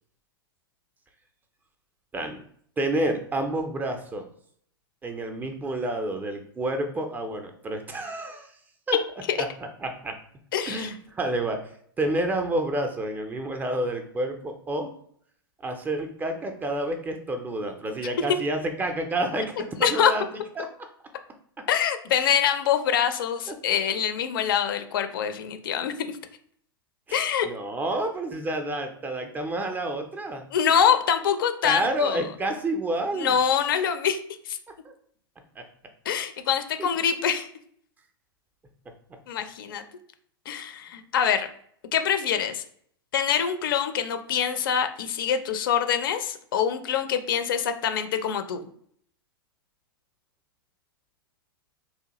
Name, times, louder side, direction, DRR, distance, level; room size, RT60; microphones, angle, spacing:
voice 1, 2.8-4.3 5.0-8.5 8.9-9.0 9.4-9.5 9.8-10.2 10.7-11.7 12.0-14.9 15.6-20.3 20.6-20.7 23.5-23.6 27.1-30.4 31.6-33.4 34.8-34.9 35.6-35.7 36.8-36.9, right 1 dB, 15° right, 5 dB, 0.4 m, -29 dB
voice 2, 10.5-10.9 19.8-20.1 21.7-26.2 27.1-27.5 30.5-32.2 33.1-34.2 34.4-34.6 36.1-37.5 39.3-39.8 40.5-41.5 41.9-42.6 43.1-48.7, left 8 dB, 60° left, 9 dB, 0.4 m, -25 dB
2.9 x 2.2 x 2.9 m, 0.63 s
figure-of-eight pair, 100°, 13 cm